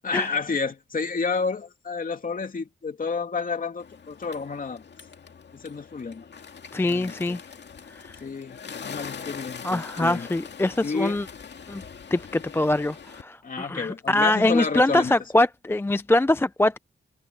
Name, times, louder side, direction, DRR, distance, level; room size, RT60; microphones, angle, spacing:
voice 1, 0.0-4.8 5.5-6.2 6.8-7.4 8.2-10.3 10.8-11.3 13.4-15.1, left 4 dB, 40° left, 2.6 m, -30 dB
Bird, 3.8-13.2, left 6 dB, 60° left, 2.2 m, -42 dB
voice 2, 6.7-7.4 7.9-8.2 9.6-11.3 11.7-11.8 12.1-16.8, left 1 dB, 10° left, 0.4 m, -23 dB
wide cardioid pair, 105°, 20 cm